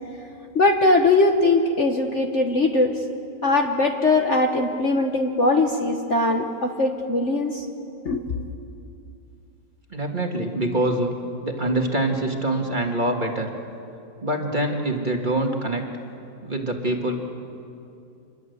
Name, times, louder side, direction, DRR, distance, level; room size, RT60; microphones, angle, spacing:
voice 1, 0.5-3.0 3.4-7.7 8.0-8.4, left 2 dB, 45° left, 3 dB, 1.4 m, -20 dB
voice 2, 9.9-11.1 11.4-13.5 14.2-15.9 16.4-17.2, right 1 dB, 25° right, 2 dB, 2.0 m, -24 dB
27.0 x 22.0 x 8.1 m, 2.6 s
omnidirectional pair, 2.0 m